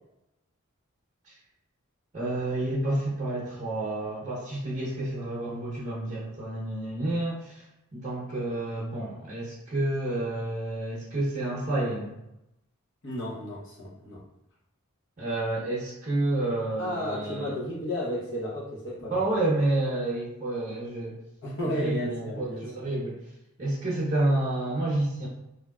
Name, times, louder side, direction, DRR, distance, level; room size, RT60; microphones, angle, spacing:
voice 1, 2.1-7.6 7.9-12.2 15.2-17.5 19.1-21.2 21.6-23.2 23.6-25.3, right 2 dB, 35° right, -7 dB, 0.7 m, -29 dB
voice 2, 13.0-14.2 16.8-19.3 21.4-22.9, equal, 60° left, -5 dB, 0.9 m, -33 dB
3.1 x 2.6 x 2.3 m, 0.87 s
head